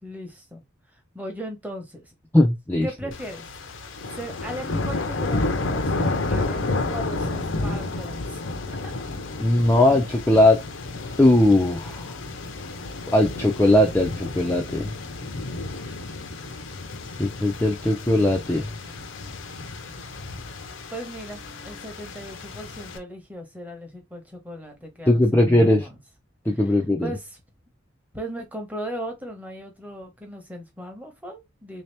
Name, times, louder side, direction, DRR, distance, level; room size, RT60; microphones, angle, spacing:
voice 1, 0.0-2.1 2.8-3.5 4.1-9.1 9.7-10.0 13.3-13.7 15.8-16.3 20.5-25.9 26.5-26.7 27.0-27.4 28.1-31.8, right 1 dB, 10° right, 0.9 m, -38 dB
voice 2, 2.3-2.9 9.4-10.6 11.2-12.1 13.1-14.9 17.2-18.7 25.1-25.9 26.5-27.1, left 1 dB, 10° left, 0.4 m, -19 dB
sound 1, 3.1-23.0, left 2 dB, 70° left, 0.7 m, -31 dB
3.4 x 2.8 x 3.3 m
head